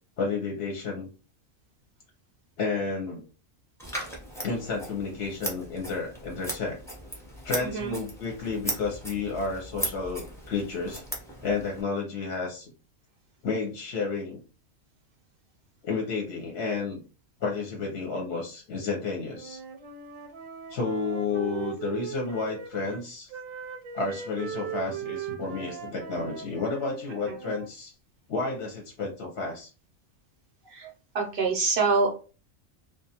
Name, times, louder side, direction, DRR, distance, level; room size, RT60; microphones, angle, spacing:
voice 1, 0.2-1.1 2.6-3.2 4.4-6.8 7.4-11.0 11.4-12.7 13.4-14.4 15.8-17.0 17.4-19.6 20.7-23.3 23.9-27.9 28.3-29.7, left 4 dB, 60° left, 0 dB, 0.8 m, -31 dB
Scissors, 3.8-11.8, right 1 dB, 5° left, 0.4 m, -38 dB
voice 2, 7.6-8.0 30.7-30.9 31.1-32.1, right 4 dB, 60° right, 0 dB, 0.6 m, -25 dB
Wind instrument woodwind instrument, 19.3-23.0 23.3-27.7, right 7 dB, 85° right, 1.0 m, -39 dB
2.4 x 2.2 x 2.7 m, 0.35 s
omnidirectional pair, 1.4 m